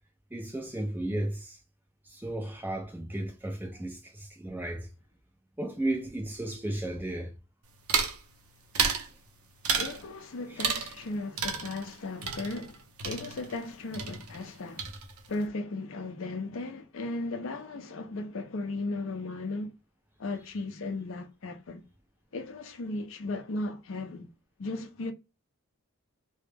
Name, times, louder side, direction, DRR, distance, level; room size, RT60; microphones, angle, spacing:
voice 1, 0.3-1.6 2.1-4.9 5.6-7.3 10.5-10.7, right 1 dB, 10° right, 0.4 m, -34 dB
sound 1, 7.9-8.2 8.7-9.1 9.6-10.0 10.6-11.1 11.4-13.7 13.9-14.5 14.8-15.3, right 6 dB, 80° right, 0.6 m, -31 dB
voice 2, 9.7-14.9 15.3-19.7 20.2-21.8 22.3-24.3 24.6-25.1, left 2 dB, 65° left, 0.5 m, -36 dB
2.1 x 2.0 x 3.2 m
head